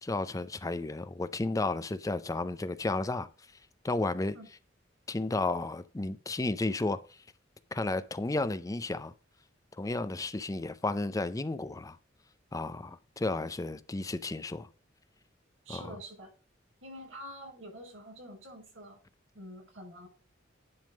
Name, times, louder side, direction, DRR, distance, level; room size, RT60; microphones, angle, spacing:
voice 1, 0.0-3.3 3.8-4.3 5.1-7.0 7.7-9.1 9.8-12.0 12.5-14.7 15.7-15.9, left 2 dB, 15° left, 0.4 m, -32 dB
voice 2, 15.6-16.3 16.8-19.0 19.3-20.1, equal, 85° right, 5.7 m, -46 dB
10.5 x 3.6 x 6.2 m
head